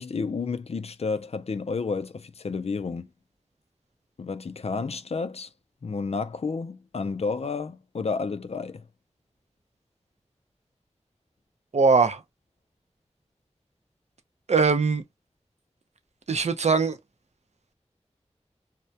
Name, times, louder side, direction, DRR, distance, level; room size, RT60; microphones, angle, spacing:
voice 1, 0.0-3.1 4.2-5.5 5.8-8.8, left 4 dB, 65° left, 0.4 m, -31 dB
voice 2, 11.7-12.2 14.5-15.0 16.3-17.0, right 4 dB, 75° right, 0.5 m, -21 dB
2.2 x 2.0 x 2.7 m
wide cardioid pair, 45°, 12 cm